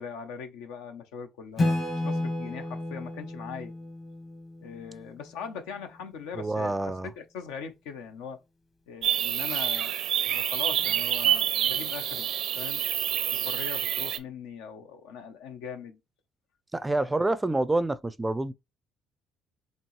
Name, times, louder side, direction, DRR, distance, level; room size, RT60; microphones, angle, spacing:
voice 1, 0.0-3.7 4.6-8.4 8.9-12.3 12.6-12.8 13.3-16.0, left 6 dB, 90° left, 0.6 m, -40 dB
Acoustic guitar / Strum, 1.6-5.1, left 2 dB, 50° left, 1.5 m, -31 dB
voice 2, 6.4-7.1 16.7-18.5, right 2 dB, 15° right, 0.4 m, -27 dB
sound 1, 9.0-14.2, right 10 dB, 70° right, 0.5 m, -27 dB
4.4 x 2.9 x 3.0 m
supercardioid pair, 75°, 0 cm